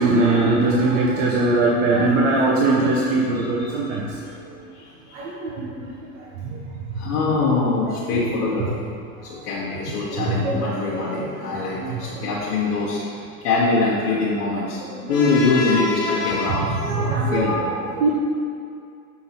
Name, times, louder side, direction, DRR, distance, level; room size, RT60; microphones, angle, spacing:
voice 1, 0.0-4.1 5.1-5.9 6.5-6.6 7.8-8.2 8.6-8.7 10.2-11.2 11.8-12.3 14.8-15.1 16.5-18.1, right 2 dB, 60° right, -4 dB, 0.9 m, -22 dB
voice 2, 3.3-3.7 4.2-4.3 4.7-5.2 7.0-8.8 9.2-14.8 15.1-17.6, left 3 dB, 50° left, -7 dB, 1.2 m, -23 dB
6.0 x 3.8 x 4.2 m, 2.3 s
figure-of-eight pair, 90°, 46 cm